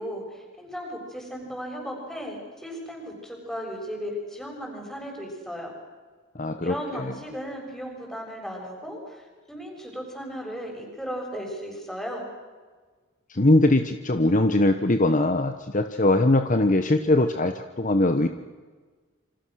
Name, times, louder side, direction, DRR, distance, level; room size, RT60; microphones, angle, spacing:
voice 1, 0.0-5.7 6.6-12.2, equal, 5° left, 0 dB, 7.0 m, -36 dB
voice 2, 6.3-7.1 13.3-18.3, left 2 dB, 40° left, 7 dB, 1.2 m, -21 dB
28.5 x 25.5 x 6.5 m, 1.4 s
head